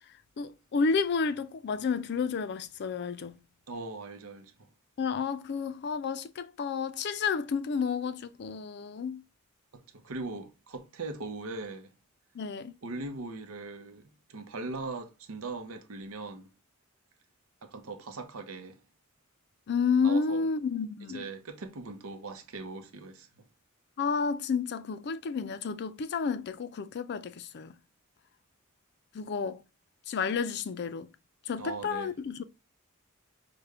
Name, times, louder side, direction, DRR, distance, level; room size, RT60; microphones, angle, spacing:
voice 1, 0.4-3.4 5.0-9.2 12.4-12.7 19.7-21.3 24.0-27.7 29.1-29.6 30.1-31.1 31.5-32.4, left 5 dB, 55° left, 0.4 m, -31 dB
voice 2, 3.7-4.7 9.7-11.9 12.8-16.5 17.6-18.8 20.0-20.5 21.1-23.3 31.6-32.1, right 3 dB, 85° right, 0.7 m, -40 dB
4.9 x 2.2 x 3.3 m
head